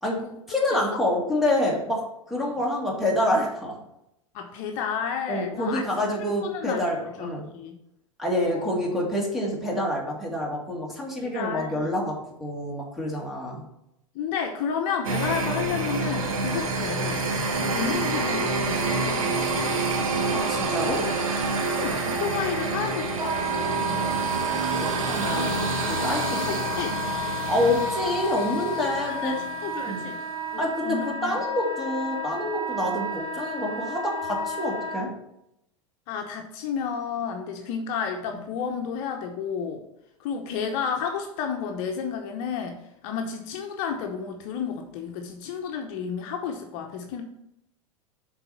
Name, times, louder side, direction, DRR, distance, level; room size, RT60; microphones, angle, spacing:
voice 1, 0.5-2.0 2.3-3.8 5.3-7.5 8.2-13.6 20.3-21.0 24.6-25.6 25.9-26.4 27.5-29.4 29.9-30.0 30.6-35.1, left 1 dB, ahead, -3 dB, 2.2 m, -27 dB
voice 2, 4.3-5.8 6.2-6.8 7.2-7.8 8.4-9.0 11.2-11.9 14.1-17.2 17.7-19.6 21.0-21.1 21.7-24.0 26.4-27.0 29.0-30.2 30.5-31.4 36.1-39.8 40.2-47.2, left 6 dB, 50° left, 4 dB, 0.9 m, -32 dB
sound 1, 15.0-29.8, right 3 dB, 80° right, 1.4 m, -28 dB
Wind instrument woodwind instrument, 23.2-35.0, equal, 25° right, 1.2 m, -32 dB
6.8 x 4.1 x 5.8 m, 0.82 s
hypercardioid pair, 100°, 17 cm